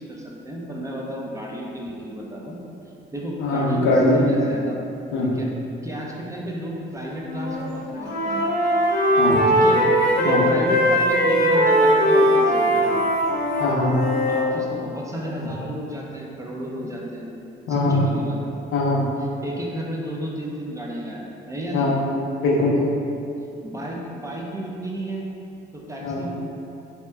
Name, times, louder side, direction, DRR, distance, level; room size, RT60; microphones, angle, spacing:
voice 1, 0.0-2.6 3.1-4.8 5.2-5.5 5.8-8.4 9.5-9.8 10.2-13.0 14.3-17.3 17.7-18.6 19.4-21.9 23.6-25.3 25.7-26.3, equal, 15° right, -3 dB, 0.4 m, -32 dB
voice 2, 3.4-4.5 5.1-5.3 9.2-9.5 10.3-10.4 13.6-14.0 17.7-18.0 18.7-19.0 21.7-22.0 22.4-22.9 26.0-26.2, left 2 dB, 85° left, -2 dB, 0.5 m, -21 dB
Wind instrument woodwind instrument, 7.2-7.6 7.9-14.5, equal, 50° left, 0.8 m, -20 dB
2.8 x 2.2 x 3.3 m, 2.7 s
cardioid pair, 90°, 20 cm